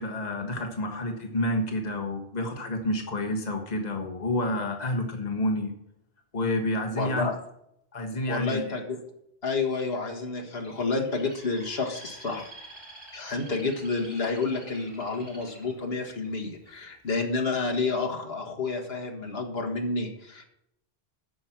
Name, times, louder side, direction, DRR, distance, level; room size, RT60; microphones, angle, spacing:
voice 1, 0.0-5.7 6.3-7.3 7.9-8.8, left 1 dB, 40° left, 2 dB, 1.6 m, -29 dB
voice 2, 7.0-7.4 8.3-9.0 9.4-12.5 13.1-20.4, left 3 dB, 70° left, 1 dB, 1.9 m, -30 dB
Bird, 10.6-16.7 17.3-17.6, right 1 dB, 25° right, 3.3 m, -48 dB
13.5 x 5.5 x 5.9 m, 0.78 s
omnidirectional pair, 1.1 m